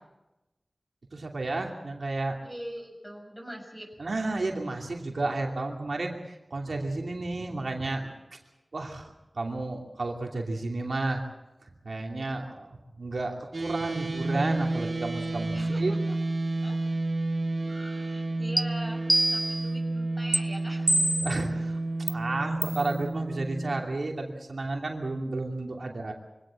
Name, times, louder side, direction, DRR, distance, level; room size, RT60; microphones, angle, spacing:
voice 1, 1.1-2.4 4.0-6.1 6.5-8.4 8.7-11.2 11.8-15.9 21.2-21.8 22.1-26.1, right 2 dB, 85° right, 2 dB, 2.7 m, -32 dB
voice 2, 2.4-3.9 15.5-16.1 16.6-16.8 17.7-21.0 25.9-26.0, equal, 5° left, 1 dB, 6.5 m, -42 dB
sound 1, 13.5-23.8, right 2 dB, 60° right, 2.1 m, -30 dB
sound 2, 18.6-18.7 19.1-19.7 20.3-20.4 20.9-21.4 22.1-22.2 22.6-22.8, right 1 dB, 20° right, 0.8 m, -25 dB
24.5 x 17.5 x 7.7 m, 0.98 s
wide cardioid pair, 60°, 0 cm